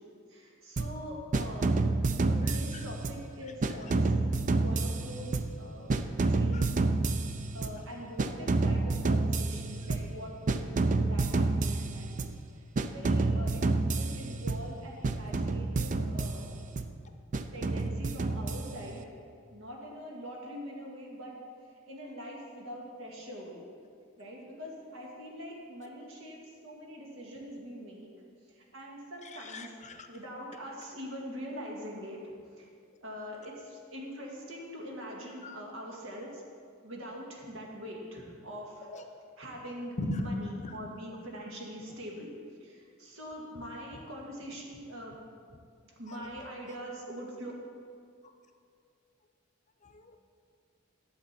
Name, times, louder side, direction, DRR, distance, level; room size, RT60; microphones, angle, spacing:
voice 1, 0.3-1.8 2.1-5.9 6.2-6.8 7.5-12.2 12.9-16.5 17.5-19.1 19.5-21.3 21.9-23.6 24.2-28.1 28.5-29.7 30.1-32.7 33.0-36.4 36.8-38.9 39.4-42.3 42.6-45.2 45.8-47.5, equal, 75° right, -2 dB, 1.8 m, -43 dB
sound 1, 0.8-1.0 1.3-3.3 3.6-5.6 5.9-7.8 8.2-10.2 10.5-12.4 12.8-14.8 15.0-16.9 17.3-19.0, right 3 dB, 40° right, 0.4 m, -29 dB
voice 2, 2.4-2.8 6.2-6.6 29.3-30.1 35.4-35.6 38.9-39.2 40.0-40.3 40.6-40.8 46.1-46.2 49.8-50.2, left 1 dB, 35° left, 6 dB, 0.7 m, -39 dB
10.5 x 7.6 x 4.3 m, 2.3 s
head